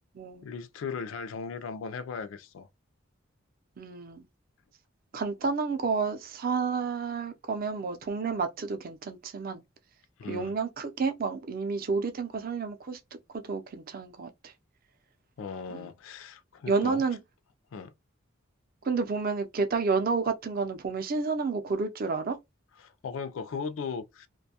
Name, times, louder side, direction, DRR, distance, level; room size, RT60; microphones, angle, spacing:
voice 1, 0.4-2.7 10.2-10.5 15.4-17.0 17.7-17.9 22.8-24.3, left 5 dB, 75° left, 0.4 m, -37 dB
voice 2, 3.8-4.3 5.1-9.6 10.3-13.0 13.4-14.5 15.7-15.9 16.7-17.2 18.8-22.4, right 4 dB, 45° right, 0.5 m, -30 dB
2.5 x 2.2 x 2.7 m
head